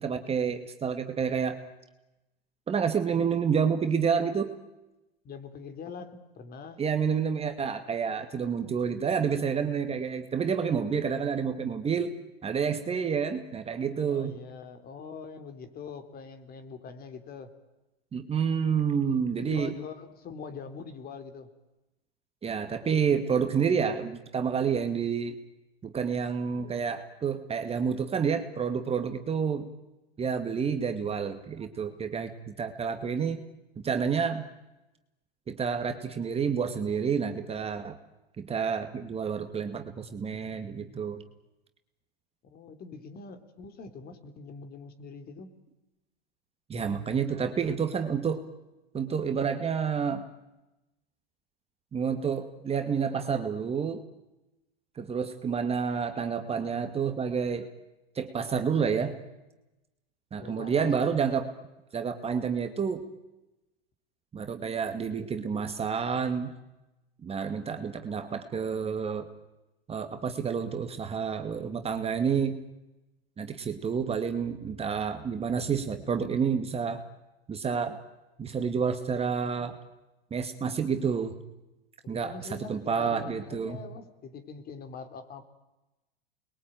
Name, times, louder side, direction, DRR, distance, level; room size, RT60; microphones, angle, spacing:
voice 1, 0.0-1.6 2.7-4.5 6.8-12.2 12.4-14.4 18.1-19.8 22.4-25.4 25.8-29.7 30.2-33.4 33.8-34.4 35.5-38.0 38.4-41.2 46.7-48.4 48.9-50.3 51.9-54.0 55.0-57.7 58.2-59.2 60.3-61.5 61.9-63.0 64.3-66.5 67.2-69.3 69.9-72.6 73.4-77.0 77.5-78.0 78.4-79.8 80.3-81.3 82.1-82.3 82.7-83.8, right 6 dB, 20° right, 7 dB, 2.1 m, -29 dB
voice 2, 5.2-6.8 14.0-17.5 19.4-21.5 42.4-45.5 60.3-61.1 82.0-85.4, left 5 dB, 30° left, 9 dB, 3.7 m, -43 dB
29.5 x 22.0 x 9.2 m, 1.0 s
hypercardioid pair, 105°, 30 cm